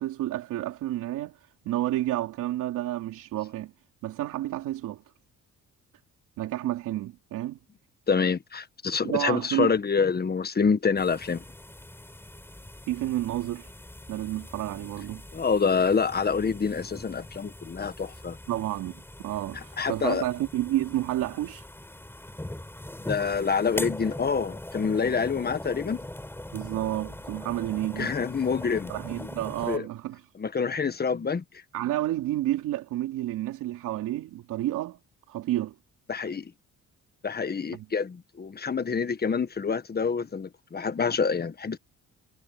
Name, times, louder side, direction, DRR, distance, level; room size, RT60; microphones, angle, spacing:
voice 1, 0.0-3.7 4.0-5.0 6.4-7.6 9.0-9.7 12.9-13.7 14.1-15.2 18.5-21.7 26.5-28.1 28.9-30.2 31.7-35.0 35.3-35.7 37.7-37.9, right 14 dB, 90° right, 3.2 m, -30 dB
voice 2, 8.1-11.4 15.3-18.4 19.8-20.2 23.1-26.0 28.0-28.9 29.2-29.3 29.7-29.8 30.4-31.4 36.1-36.5 37.2-41.8, left 5 dB, 30° left, 1.6 m, -27 dB
sound 1, 11.0-29.8, left 1 dB, 10° left, 4.1 m, -41 dB
cardioid pair, 90°, 30 cm